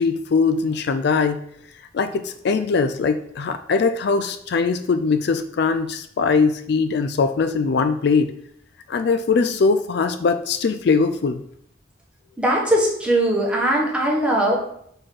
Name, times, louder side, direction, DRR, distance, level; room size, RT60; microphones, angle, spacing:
voice 1, 0.0-1.4 1.9-8.3 8.9-11.4, left 4 dB, 60° left, 10 dB, 0.4 m, -21 dB
voice 2, 12.4-14.6, right 1 dB, 5° right, -3 dB, 1.4 m, -20 dB
4.8 x 4.3 x 5.9 m, 0.70 s
head